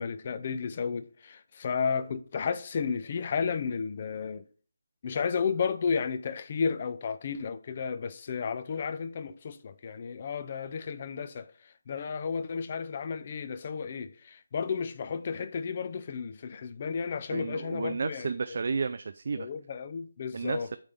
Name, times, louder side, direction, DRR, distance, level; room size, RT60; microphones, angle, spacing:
voice 1, 0.0-4.4 5.0-11.5 11.9-18.4 19.3-20.7, left 6 dB, 30° left, 0.5 m, -33 dB
voice 2, 17.3-19.5 20.3-20.8, right 4 dB, 50° right, 0.4 m, -32 dB
8.8 x 3.3 x 5.3 m
figure-of-eight pair, 170°, 0 cm